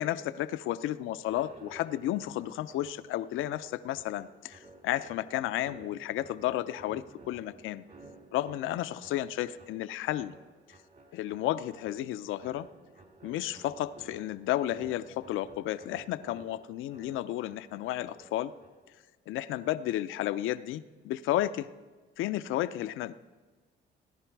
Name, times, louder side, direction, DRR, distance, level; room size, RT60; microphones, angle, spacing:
voice 1, 0.0-7.8 8.3-10.3 11.1-12.7 13.2-18.5 19.3-21.7 22.2-23.1, left 13 dB, 90° left, 14 dB, 0.5 m, -32 dB
sound 1, 1.2-19.0, right 2 dB, 45° right, 2.1 m, -54 dB
18.0 x 10.5 x 4.6 m, 1.3 s
cardioid pair, 90°, 20 cm